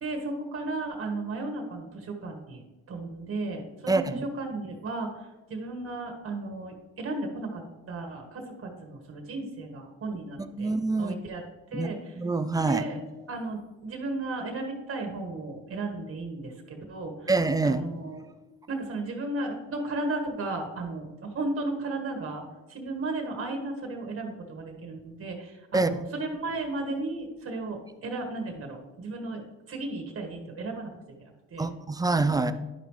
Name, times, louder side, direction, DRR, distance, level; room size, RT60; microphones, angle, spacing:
voice 1, 0.0-2.6 2.9-4.0 4.4-10.7 11.0-11.4 11.7-12.1 12.7-13.0 13.3-17.3 17.6-18.3 18.7-22.4 22.7-29.4 29.7-30.9 31.2-31.7, right 2 dB, 45° right, 3 dB, 1.6 m, -34 dB
voice 2, 3.9-4.3 10.6-11.1 11.7-11.9 12.2-12.8 17.3-17.8 25.7-25.9 31.6-32.5, right 3 dB, 10° right, 10 dB, 0.4 m, -25 dB
11.0 x 5.1 x 3.2 m, 1.1 s
cardioid pair, 90°, 30 cm